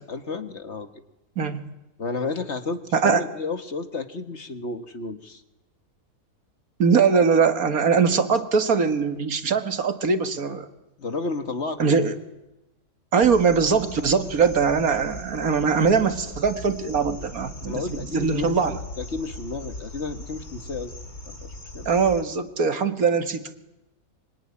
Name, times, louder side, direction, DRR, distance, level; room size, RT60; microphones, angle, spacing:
voice 1, 0.1-0.9 2.0-5.4 11.0-12.1 17.6-20.9 21.3-21.9, left 3 dB, 45° left, 9 dB, 1.8 m, -32 dB
voice 2, 2.9-3.3 6.8-10.7 11.8-12.1 13.1-17.8 18.1-18.8 21.9-23.6, right 5 dB, 65° right, 9 dB, 2.1 m, -21 dB
sound 1, 13.2-22.2, left 1 dB, 70° left, 4.0 m, -40 dB
25.0 x 23.5 x 9.8 m, 0.95 s
omnidirectional pair, 1.6 m